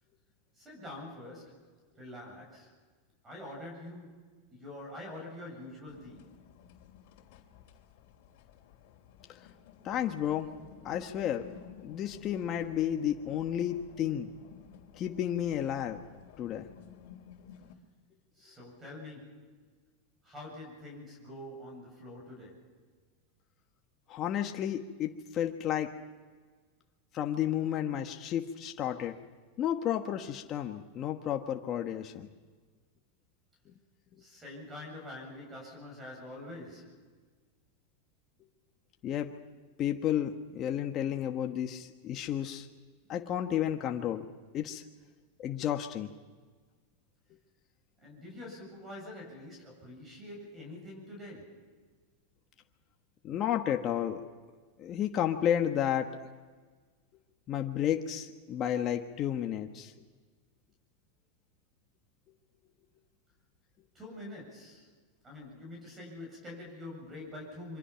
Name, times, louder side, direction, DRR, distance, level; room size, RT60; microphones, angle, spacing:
voice 1, 0.6-1.7 2.0-2.7 3.2-6.3 18.3-19.5 20.2-22.7 34.2-37.0 48.0-51.7 63.9-64.9 65.2-67.8, left 1 dB, 20° right, 0 dB, 7.9 m, -46 dB
sound 1, 5.9-17.7, left 8 dB, 60° left, 3.1 m, -54 dB
voice 2, 9.8-10.5 10.8-11.5 11.8-14.3 15.0-16.0 16.4-16.7 24.1-25.9 27.1-29.1 29.6-32.3 33.7-33.8 39.0-39.3 39.8-42.7 43.1-44.2 44.5-44.8 45.4-46.1 53.2-54.2 54.8-56.1 57.5-59.9, left 10 dB, 35° left, 4 dB, 1.3 m, -32 dB
26.5 x 24.5 x 5.8 m, 1.4 s
supercardioid pair, 140°, 0 cm